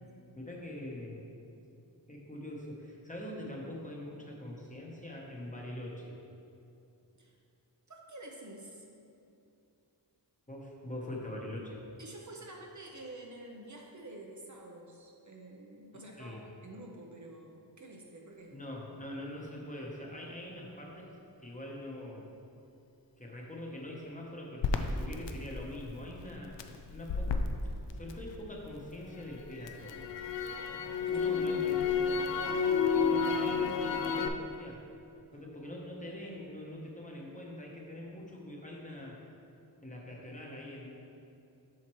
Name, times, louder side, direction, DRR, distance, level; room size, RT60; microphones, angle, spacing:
voice 1, 0.4-1.2 2.1-6.2 10.5-11.8 15.9-16.4 18.5-21.1 21.4-22.3 23.2-26.5 26.9-27.5 27.9-30.1 30.7-31.9 32.7-34.8 35.3-39.2 39.8-40.9, left 1 dB, 20° left, -2 dB, 1.0 m, -43 dB
voice 2, 7.9-8.8 12.0-18.6 31.1-31.4, right 1 dB, 45° right, 0 dB, 0.7 m, -49 dB
Crackle, 24.6-28.7 29.1-34.3, left 5 dB, 80° left, 0.5 m, -31 dB
7.4 x 5.8 x 3.1 m, 2.7 s
wide cardioid pair, 80°, 43 cm